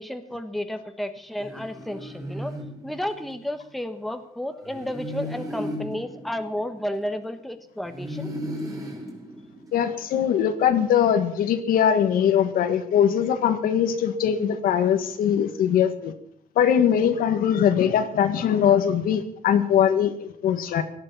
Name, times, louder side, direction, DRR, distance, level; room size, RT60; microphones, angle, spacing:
voice 1, 0.0-2.5 2.8-8.3, left 1 dB, ahead, 7 dB, 1.1 m, -32 dB
sound 1, 1.4-3.5 4.6-7.3 7.8-10.1, equal, 25° right, 3.4 m, -36 dB
voice 2, 9.7-16.1 16.5-20.8, left 9 dB, 80° left, 8 dB, 1.7 m, -21 dB
17.5 x 12.0 x 5.8 m, 0.71 s
cardioid pair, 140°, 15 cm